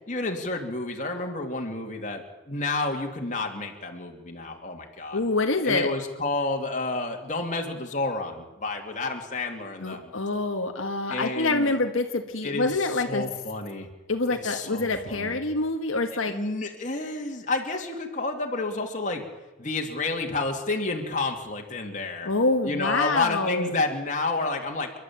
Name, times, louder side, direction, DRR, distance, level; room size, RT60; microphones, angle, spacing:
voice 1, 0.1-5.2 5.6-10.1 11.1-11.8 12.4-13.9 14.3-15.4 16.3-19.2 19.6-22.3 22.6-25.0, left 3 dB, 35° left, 2 dB, 2.8 m, -30 dB
voice 2, 5.1-5.9 9.8-13.2 14.1-16.3 22.2-23.8, left 3 dB, 80° left, 4 dB, 1.6 m, -26 dB
29.5 x 12.0 x 8.8 m, 1.2 s
head